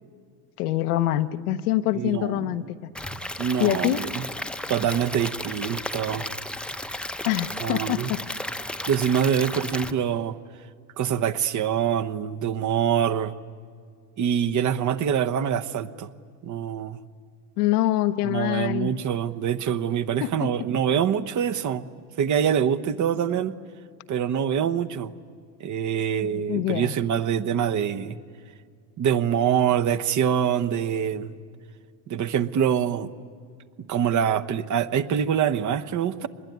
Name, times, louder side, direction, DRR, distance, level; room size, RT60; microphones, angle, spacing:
voice 1, 0.6-2.8 3.6-4.0 7.2-8.2 17.6-18.9 20.2-20.3 26.5-27.0, left 14 dB, 90° left, 11 dB, 1.1 m, -24 dB
voice 2, 1.9-2.7 3.4-4.3 4.7-6.3 7.6-8.1 8.9-10.4 11.0-13.3 14.2-16.1 16.4-17.0 18.2-21.8 22.2-23.5 24.1-25.1 25.6-28.1 29.0-31.3 32.1-33.1 33.9-36.3, right 8 dB, 40° right, 11 dB, 1.1 m, -25 dB
Stream / Liquid, 2.9-9.9, left 1 dB, ahead, 0.8 m, -34 dB
24.5 x 21.5 x 9.5 m, 2.1 s
supercardioid pair, 100°, 44 cm